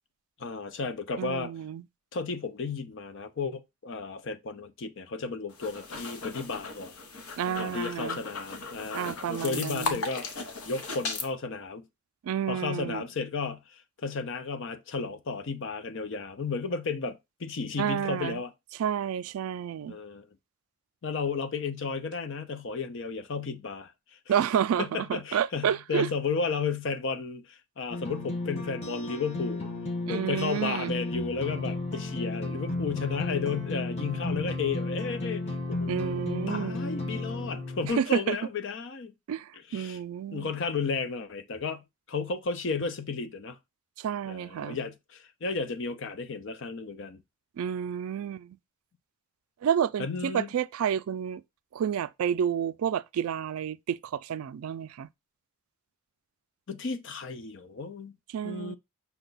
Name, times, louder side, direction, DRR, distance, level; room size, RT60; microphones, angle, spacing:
voice 1, 0.4-1.5 2.1-6.9 7.6-11.8 12.5-18.5 19.9-20.3 21.0-23.9 24.3-24.4 24.8-29.7 30.1-39.1 39.7-40.0 40.3-43.6 44.3-47.2 50.0-50.5 56.7-58.1 58.4-58.8, left 4 dB, 60° left, 0.5 m, -33 dB
voice 2, 1.2-1.8 7.4-8.2 8.9-10.0 12.2-13.0 17.8-18.4 18.8-20.0 24.3-26.1 30.1-30.9 35.9-36.8 37.8-38.4 39.3-40.5 44.0-44.8 47.6-48.6 49.6-51.4 51.7-55.1 58.3-58.8, right 8 dB, 80° right, 0.3 m, -30 dB
sound 1, 5.5-11.3, left 4 dB, 85° left, 0.9 m, -37 dB
sound 2, 27.9-37.9, left 2 dB, 30° left, 1.0 m, -33 dB
5.8 x 2.2 x 3.9 m
head